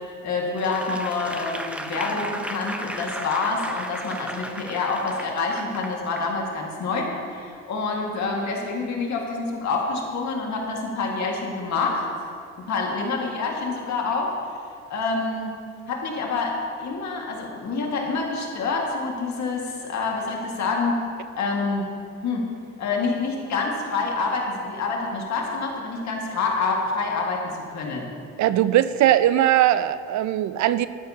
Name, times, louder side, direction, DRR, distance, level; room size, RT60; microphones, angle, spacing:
voice 1, 0.2-12.0 12.6-14.3 14.9-15.5 15.9-21.1 21.3-21.9 22.2-22.5 22.8-28.1, left 3 dB, 70° left, 0 dB, 1.9 m, -27 dB
Applause / Crowd, 0.6-6.3 6.8-7.0, equal, 5° right, 0.7 m, -35 dB
voice 2, 28.4-30.9, right 12 dB, 70° right, 14 dB, 0.5 m, -20 dB
12.5 x 10.5 x 2.8 m, 2.2 s
cardioid pair, 90°, 30 cm